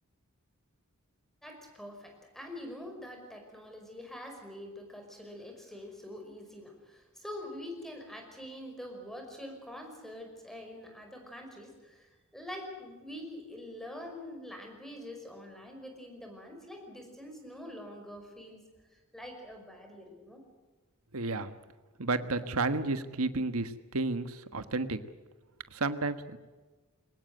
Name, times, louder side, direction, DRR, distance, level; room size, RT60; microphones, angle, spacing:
voice 1, 1.4-18.6 18.9-20.4, left 1 dB, ahead, 3 dB, 5.4 m, -45 dB
voice 2, 21.1-21.6 22.0-25.0 25.7-26.4, right 3 dB, 70° right, 10 dB, 1.4 m, -32 dB
23.0 x 19.5 x 8.0 m, 1.3 s
head